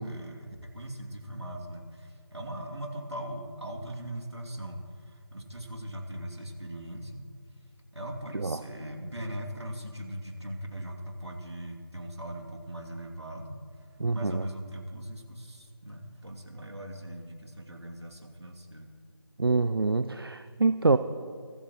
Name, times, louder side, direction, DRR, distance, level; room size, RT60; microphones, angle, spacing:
voice 1, 0.0-7.2 7.9-18.9, right 1 dB, 75° right, 2 dB, 2.6 m, -40 dB
voice 2, 14.0-14.4 19.4-21.0, right 3 dB, 60° right, 11 dB, 0.5 m, -25 dB
24.0 x 13.5 x 3.0 m, 2.2 s
figure-of-eight pair, 160°, 14 cm